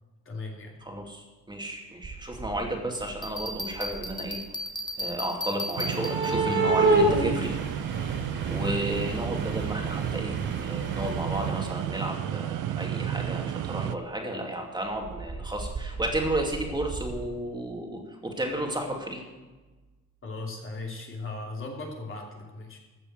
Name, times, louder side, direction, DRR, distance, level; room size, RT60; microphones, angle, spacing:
voice 1, 0.2-0.7 20.2-22.8, left 3 dB, 40° left, -1 dB, 2.9 m, -37 dB
voice 2, 0.8-4.4 5.0-7.6 8.5-19.2, right 1 dB, 15° right, 1 dB, 2.6 m, -32 dB
sound 1, 2.0-2.7 3.0-4.3 5.8-11.9 13.3-13.4 13.9-14.0 15.0-17.2, right 2 dB, 35° right, 3.4 m, -30 dB
Bell, 3.2-6.6, left 1 dB, 15° left, 1.3 m, -35 dB
sound 2, 5.8-14.0, right 11 dB, 70° right, 0.6 m, -32 dB
14.0 x 6.8 x 7.6 m, 1.2 s
cardioid pair, 115°, 32 cm